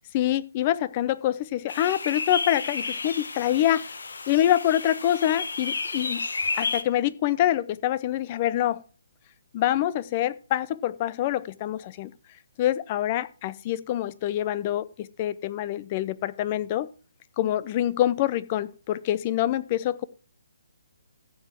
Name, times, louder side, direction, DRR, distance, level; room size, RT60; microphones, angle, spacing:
voice 1, 0.1-3.8 4.3-6.3 6.5-8.8 9.5-12.1 12.6-16.9 17.4-20.0, left 12 dB, 30° left, 18 dB, 0.6 m, -25 dB
sound 1, 1.7-6.8, left 4 dB, 80° left, 1.2 m, -32 dB
14.5 x 7.1 x 4.4 m, 0.38 s
hypercardioid pair, 155°, 0 cm